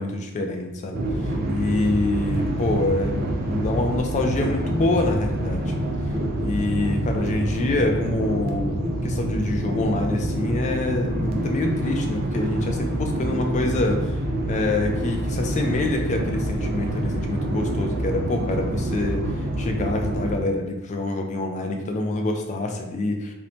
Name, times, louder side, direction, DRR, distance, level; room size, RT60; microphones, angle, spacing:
voice 1, 0.0-5.7 6.4-14.1 14.4-19.3 19.6-23.3, left 2 dB, 35° left, 3 dB, 0.3 m, -26 dB
sound 1, 0.9-20.4, right 1 dB, 45° right, 0.4 m, -26 dB
2.6 x 2.1 x 2.9 m, 0.97 s
head